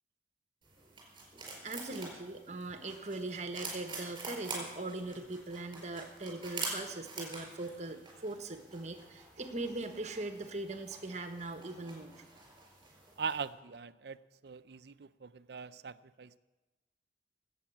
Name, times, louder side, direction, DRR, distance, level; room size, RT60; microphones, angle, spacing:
sound 1, 0.6-13.5, right 3 dB, 25° right, 4.7 m, -46 dB
voice 1, 1.6-12.1, right 2 dB, 40° right, 7 dB, 1.3 m, -40 dB
voice 2, 13.2-14.2 14.4-16.3, right 5 dB, 70° right, 14 dB, 0.5 m, -41 dB
19.0 x 8.7 x 7.3 m, 1.2 s
head